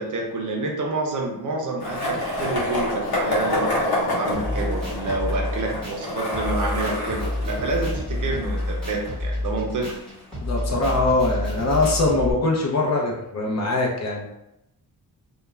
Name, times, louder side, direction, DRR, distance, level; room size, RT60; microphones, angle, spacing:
voice 1, 0.0-10.0, right 2 dB, 55° right, 0 dB, 0.6 m, -28 dB
Skateboard, 1.8-9.7, left 1 dB, 70° left, 1.0 m, -28 dB
sound 1, 4.3-12.3, left 1 dB, ahead, 1.0 m, -29 dB
voice 2, 10.4-14.3, left 2 dB, 45° left, -1 dB, 0.6 m, -22 dB
2.3 x 2.2 x 3.0 m, 0.85 s
wide cardioid pair, 150°, 39 cm